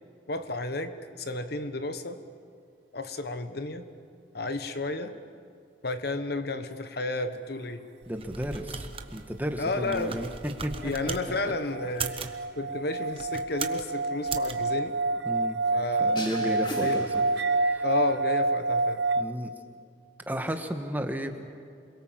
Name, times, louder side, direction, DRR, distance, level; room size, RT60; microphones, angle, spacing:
voice 1, 0.3-2.2 2.9-3.9 4.3-5.1 5.8-7.8 9.6-10.3 10.8-12.1 12.5-15.0 15.7-16.3 16.8-17.1 17.8-19.0, left 2 dB, 55° left, 9 dB, 1.2 m, -32 dB
sound 1, 8.0-11.2 11.8-12.4 13.1-13.9 14.3-14.5, right 5 dB, 30° right, 1.2 m, -38 dB
voice 2, 8.1-10.3 10.6-10.9 15.2-15.6 16.0-17.2 17.5-17.8 19.2-19.5 20.3-21.3, equal, 10° right, 5 dB, 1.4 m, -33 dB
sound 2, 10.8-19.2, right 3 dB, 65° right, 0.8 m, -28 dB
sound 3, 16.1-17.9, left 1 dB, 25° left, 2.4 m, -39 dB
28.0 x 22.0 x 7.6 m, 2.4 s
head